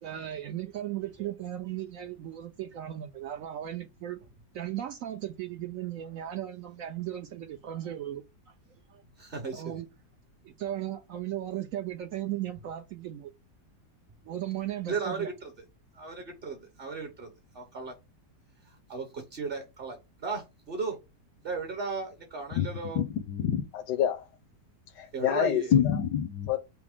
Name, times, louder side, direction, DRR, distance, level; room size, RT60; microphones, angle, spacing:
voice 1, 0.0-4.2 4.5-8.2 8.9-9.0 9.5-9.9 10.4-13.3 14.2-15.3, right 12 dB, 70° right, 0.8 m, -36 dB
voice 2, 9.2-9.7 14.9-15.5 15.9-17.9 18.7-21.0 21.4-23.0 25.1-25.8, right 4 dB, 40° right, 1.0 m, -36 dB
voice 3, 22.9-24.3 24.9-26.6, left 9 dB, 80° left, 1.2 m, -27 dB
5.8 x 2.0 x 3.5 m
omnidirectional pair, 1.8 m